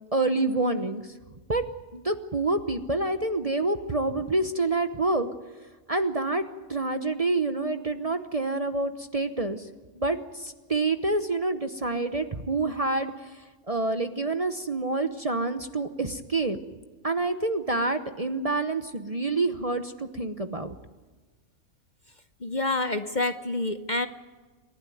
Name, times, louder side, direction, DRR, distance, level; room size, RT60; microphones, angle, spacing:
voice 1, 0.1-1.1 1.5-1.6 1.9-5.3 5.9-6.4 6.7-9.7 9.9-16.6 17.0-20.7, right 2 dB, 30° right, 8 dB, 0.9 m, -27 dB
voice 2, 22.4-24.1, left 2 dB, 40° left, 9 dB, 0.9 m, -27 dB
28.0 x 12.0 x 9.3 m, 1.3 s
omnidirectional pair, 1.4 m